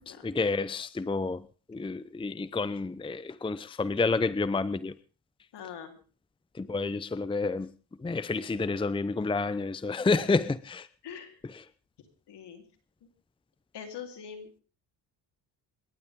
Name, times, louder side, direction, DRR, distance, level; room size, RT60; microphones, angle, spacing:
voice 1, 0.1-1.4 1.7-4.9 6.5-7.7 8.0-10.9 11.4-11.6, left 3 dB, 10° left, 0.7 m, -29 dB
voice 2, 5.5-6.0 11.0-11.4 12.3-12.6 13.7-14.5, left 7 dB, 65° left, 4.0 m, -43 dB
27.0 x 12.0 x 3.7 m
supercardioid pair, 80°, 44 cm